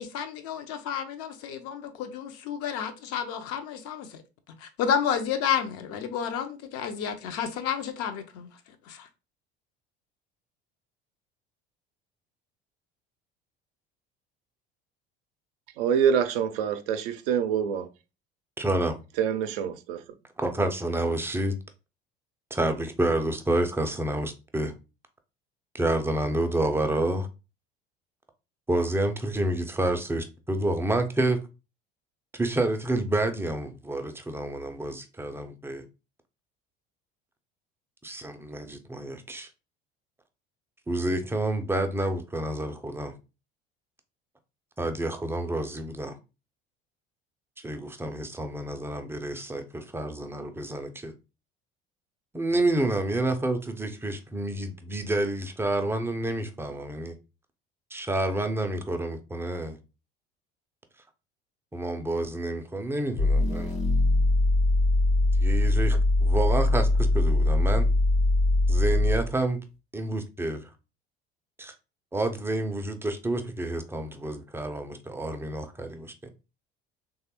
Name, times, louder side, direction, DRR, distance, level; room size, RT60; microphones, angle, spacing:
voice 1, 0.0-4.2 4.6-8.5 8.9-9.1, left 8 dB, 50° left, 0.6 m, -31 dB
voice 2, 15.8-17.9 19.2-20.0, right 8 dB, 60° right, 0.5 m, -25 dB
voice 3, 18.6-19.0 20.4-21.6 22.5-24.7 25.7-27.3 28.7-31.4 32.3-35.8 38.0-39.5 40.9-43.1 44.8-46.2 47.6-51.1 52.3-57.2 57.9-59.8 61.7-63.7 65.4-67.9 68.7-69.6 69.9-70.7 71.6-71.7 72.1-76.3, right 1 dB, 10° right, 0.4 m, -29 dB
sound 1, 63.2-69.4, left 2 dB, 75° left, 0.9 m, -22 dB
3.2 x 2.3 x 2.8 m
figure-of-eight pair, 65°, 31 cm